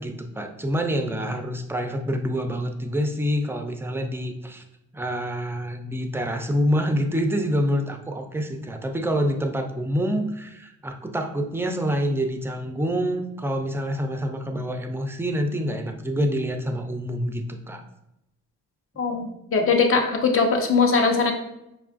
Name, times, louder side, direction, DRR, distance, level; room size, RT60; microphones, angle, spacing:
voice 1, 0.0-4.6 4.9-17.8, equal, 10° right, 5 dB, 0.3 m, -26 dB
voice 2, 19.0-21.3, left 4 dB, 45° left, 3 dB, 0.7 m, -21 dB
5.2 x 2.3 x 2.4 m, 0.86 s
cardioid pair, 90°, 30 cm